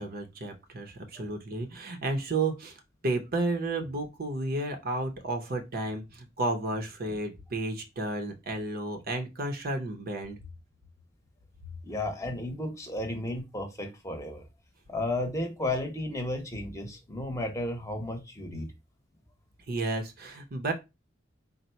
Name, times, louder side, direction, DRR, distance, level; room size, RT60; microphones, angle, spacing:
voice 1, 0.0-10.4 19.7-20.7, right 2 dB, 50° right, 0.7 m, -32 dB
voice 2, 11.8-14.5 14.9-18.7, left 1 dB, 15° left, 0.9 m, -33 dB
4.0 x 2.1 x 4.3 m
head